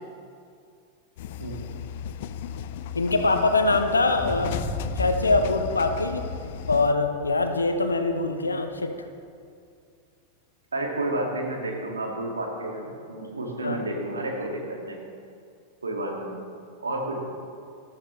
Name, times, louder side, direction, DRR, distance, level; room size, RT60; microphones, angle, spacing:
sound 1, 1.2-6.9, left 8 dB, 55° left, 0.4 m, -36 dB
voice 1, 2.9-4.6 4.8-6.3 6.7-8.9 13.6-13.8, left 3 dB, 80° left, 7 dB, 0.9 m, -23 dB
sound 2, 4.1-8.7, left 1 dB, 10° right, 2.7 m, -36 dB
voice 2, 10.7-15.0 15.8-16.4 16.8-17.2, right 1 dB, 75° right, 0 dB, 2.0 m, -31 dB
13.5 x 13.0 x 3.2 m, 2.3 s
figure-of-eight pair, 90°, 0 cm